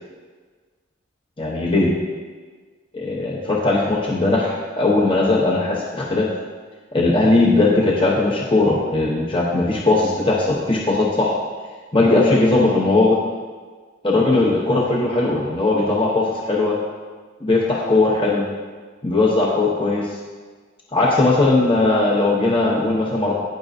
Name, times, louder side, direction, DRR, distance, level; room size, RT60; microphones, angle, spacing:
voice 1, 1.4-1.9 2.9-6.3 6.9-11.4 11.9-13.2 14.0-16.8 17.4-18.4 19.0-20.1 20.9-23.3, left 2 dB, 25° left, -3 dB, 0.9 m, -18 dB
18.0 x 6.1 x 2.7 m, 1.5 s
head